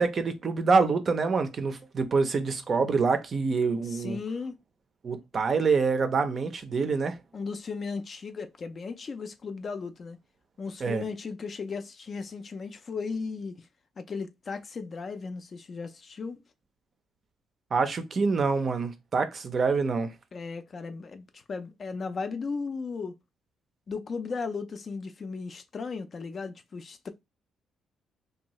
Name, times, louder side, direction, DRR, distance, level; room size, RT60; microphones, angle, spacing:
voice 1, 0.0-4.2 5.0-7.2 10.8-11.0 17.7-20.1, right 4 dB, 40° right, 0.5 m, -26 dB
voice 2, 3.8-4.6 7.3-10.2 10.6-13.7 14.0-16.4 20.3-23.1 23.9-27.1, left 4 dB, 35° left, 0.3 m, -36 dB
2.7 x 2.2 x 2.9 m
cardioid pair, 130°, 0 cm